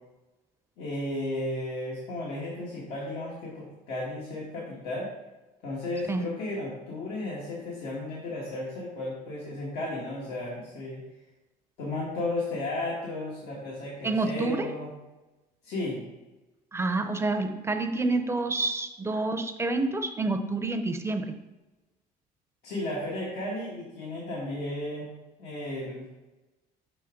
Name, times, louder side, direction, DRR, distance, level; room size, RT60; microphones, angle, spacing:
voice 1, 0.8-5.1 5.6-11.0 11.8-14.9 15.6-16.0 22.6-25.1 25.4-26.1, left 2 dB, 85° left, -6 dB, 1.8 m, -34 dB
voice 2, 14.0-14.7 16.7-21.3, right 2 dB, 15° right, 6 dB, 0.6 m, -28 dB
5.9 x 5.9 x 3.8 m, 1.1 s
cardioid pair, 110°, 17 cm